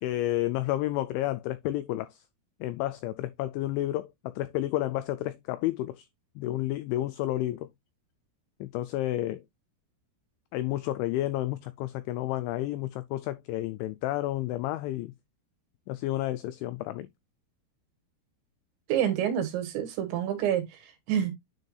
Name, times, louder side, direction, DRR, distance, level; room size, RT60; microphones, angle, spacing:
voice 1, 0.0-2.2 2.6-6.1 6.4-7.7 8.6-9.4 10.5-15.1 15.9-17.1, left 15 dB, 90° left, 2.6 m, -31 dB
voice 2, 18.9-21.3, right 10 dB, 70° right, 3.5 m, -28 dB
9.7 x 4.4 x 2.3 m
omnidirectional pair, 5.8 m